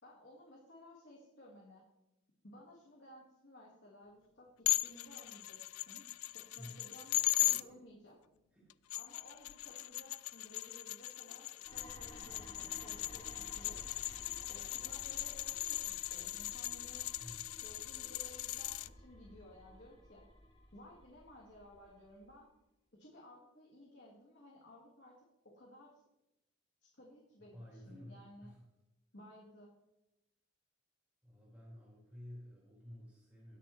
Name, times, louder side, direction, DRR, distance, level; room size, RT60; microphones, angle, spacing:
voice 1, 0.0-1.8 2.4-5.6 5.9-6.0 6.3-8.1 8.9-13.8 14.5-17.1 17.6-20.3 20.7-22.5 23.0-25.2 25.5-26.0 26.8-28.5 29.1-29.7, left 1 dB, 55° left, -3 dB, 1.8 m, -57 dB
sound 1, 4.7-7.6 8.7-18.9, left 17 dB, 85° left, 0.3 m, -38 dB
voice 2, 6.6-6.9 7.5-7.8 8.5-9.0 17.2-17.6 27.4-28.6 31.2-33.6, left 1 dB, 10° right, -7 dB, 4.2 m, -53 dB
sound 2, 11.7-22.4, equal, 20° left, 2.7 m, -55 dB
20.5 x 6.9 x 3.2 m, 0.92 s
head